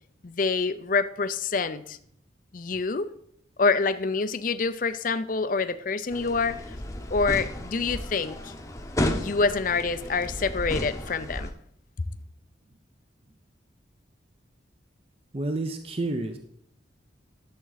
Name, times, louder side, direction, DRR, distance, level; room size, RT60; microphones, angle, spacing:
voice 1, 0.2-2.0 2.5-3.1 3.6-6.6 7.1-8.5 9.1-11.5, left 4 dB, 45° left, 0.5 m, -26 dB
sound 1, 6.1-11.5, left 1 dB, 15° left, 0.9 m, -33 dB
voice 2, 15.3-16.4, right 2 dB, 30° right, 0.7 m, -29 dB
12.0 x 7.3 x 4.0 m
head